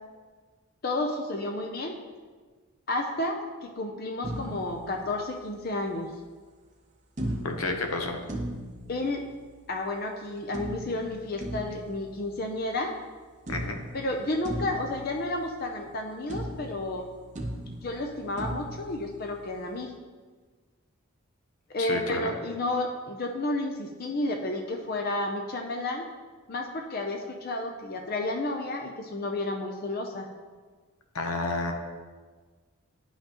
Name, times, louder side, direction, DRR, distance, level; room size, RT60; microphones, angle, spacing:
voice 1, 0.8-1.9 2.9-6.1 8.9-9.3 9.7-12.9 13.9-17.0 17.8-19.9 21.7-26.1 26.5-30.3, left 2 dB, 45° left, 3 dB, 0.5 m, -31 dB
sound 1, 4.2-5.8 7.2-9.8 10.5-13.1 13.5-16.0 16.3-19.8, right 1 dB, 35° right, 0.7 m, -38 dB
voice 2, 7.4-8.2 13.5-13.8 21.8-22.3 31.1-31.7, left 3 dB, 80° left, 4 dB, 0.9 m, -30 dB
9.9 x 5.6 x 2.9 m, 1.4 s
head